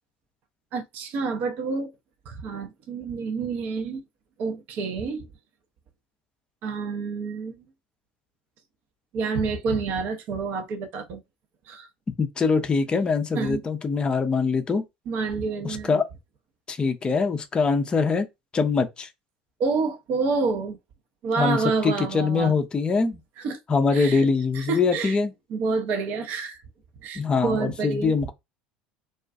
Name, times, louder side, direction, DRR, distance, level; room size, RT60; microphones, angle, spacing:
voice 1, 0.7-1.9 2.3-4.0 4.4-5.3 6.6-7.6 9.1-11.2 11.7-11.9 13.3-13.6 15.1-16.0 19.6-20.8 21.2-22.5 23.4-23.6 23.9-24.3 24.5-25.2 25.5-26.6 27.0-28.1, right 4 dB, 50° right, 0.6 m, -28 dB
voice 2, 12.2-14.8 15.6-16.1 16.7-18.3 18.5-19.1 21.4-23.2 23.7-25.3 27.2-28.3, left 4 dB, 25° left, 0.4 m, -23 dB
2.4 x 2.2 x 2.4 m
figure-of-eight pair, 65°, 4 cm